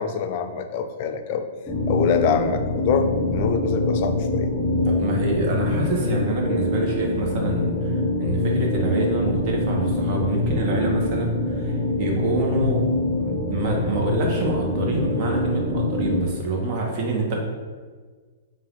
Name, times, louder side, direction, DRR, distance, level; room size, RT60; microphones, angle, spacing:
voice 1, 0.0-1.5 1.9-4.5, left 6 dB, 50° left, 7 dB, 0.4 m, -25 dB
sound 1, 1.7-16.2, left 2 dB, 20° left, 0.8 m, -24 dB
voice 2, 4.8-12.9 13.2-17.4, right 2 dB, 45° right, 0 dB, 1.0 m, -26 dB
4.4 x 2.5 x 3.6 m, 1.5 s
hypercardioid pair, 135°, 0 cm